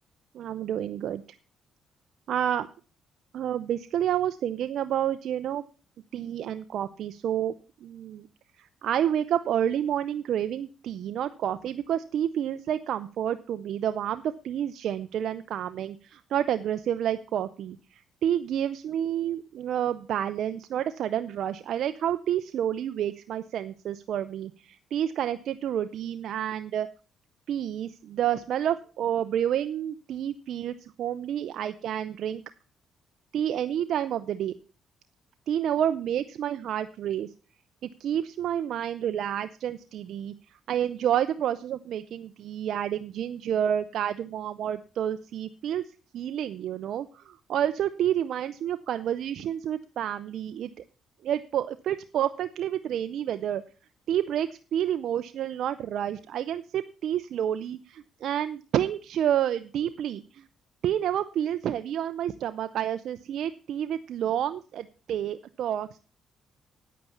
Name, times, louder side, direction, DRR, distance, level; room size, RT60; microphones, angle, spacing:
voice 1, 0.3-1.2 2.3-2.7 3.3-5.6 6.1-7.5 7.8-8.3 8.6-26.9 27.5-32.4 33.3-34.5 35.5-37.3 38.0-40.3 40.7-45.8 46.1-50.7 51.2-53.6 54.1-60.4 60.8-66.0, right 10 dB, 70° right, 11 dB, 0.6 m, -29 dB
9.4 x 8.5 x 7.1 m, 0.37 s
cardioid pair, 90°, 0 cm